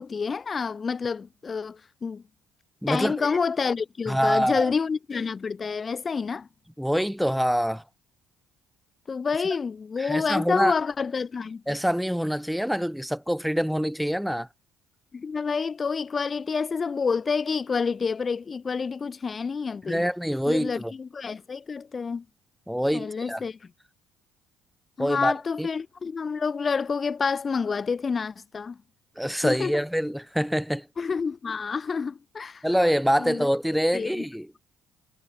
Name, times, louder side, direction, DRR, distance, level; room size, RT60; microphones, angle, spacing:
voice 1, 0.0-2.2 2.9-6.5 9.1-11.6 15.1-20.0 20.5-22.2 22.9-23.6 25.0-28.8 29.4-29.8 31.0-32.6 33.2-33.5 33.9-34.2, left 5 dB, 35° left, 1.4 m, -28 dB
voice 2, 2.8-3.3 4.1-4.7 6.8-7.8 10.0-10.7 11.7-14.5 19.9-20.9 22.7-23.4 25.0-25.7 29.2-30.9 32.6-34.5, equal, ahead, 2.1 m, -25 dB
hypercardioid pair, 65°, 0 cm